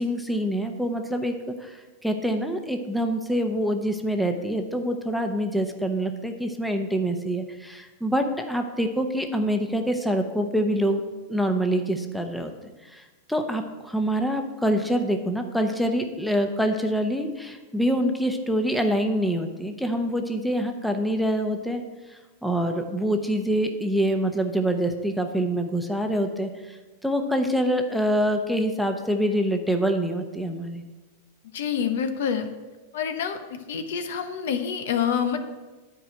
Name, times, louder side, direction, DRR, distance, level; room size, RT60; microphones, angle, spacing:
voice 1, 0.0-1.3 1.6-11.0 11.3-12.5 12.8-21.8 22.1-26.8 27.0-30.8, equal, ahead, 4 dB, 0.8 m, -25 dB
voice 2, 31.5-32.5 32.9-35.4, left 7 dB, 75° left, 8 dB, 1.0 m, -27 dB
10.0 x 4.8 x 7.6 m, 1.2 s
supercardioid pair, 135°, 0 cm